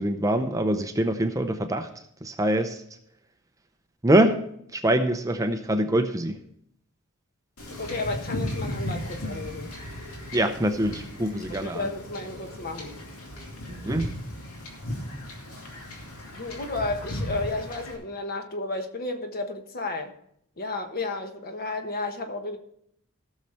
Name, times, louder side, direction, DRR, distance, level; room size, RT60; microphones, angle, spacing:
voice 1, 0.0-1.9 2.2-2.8 4.0-4.4 4.7-6.4 10.3-11.9 13.7-14.1, right 1 dB, 15° right, 7 dB, 0.6 m, -24 dB
Wind / Ocean / Boat Water vehicle, 7.6-17.9, left 1 dB, 80° left, 2.6 m, -36 dB
voice 2, 7.8-9.7 11.5-13.0 16.4-20.1 20.6-22.6, left 2 dB, 45° left, 5 dB, 1.3 m, -32 dB
16.0 x 6.6 x 4.4 m, 0.70 s
head